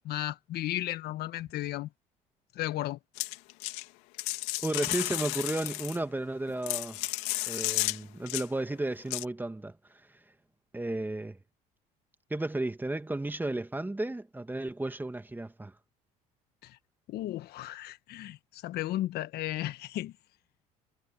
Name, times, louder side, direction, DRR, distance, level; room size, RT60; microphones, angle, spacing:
voice 1, 0.0-1.9 2.5-3.0 16.6-16.8 17.1-20.1, left 15 dB, 65° left, 1.5 m, -34 dB
sound 1, 3.2-3.9 4.2-6.0 6.5-8.0 8.3-8.5 9.1-9.3, left 23 dB, 80° left, 2.8 m, -33 dB
voice 2, 4.6-7.0 7.5-9.8 10.7-11.4 12.3-15.7, right 2 dB, 10° right, 1.7 m, -33 dB
supercardioid pair, 80°, 18 cm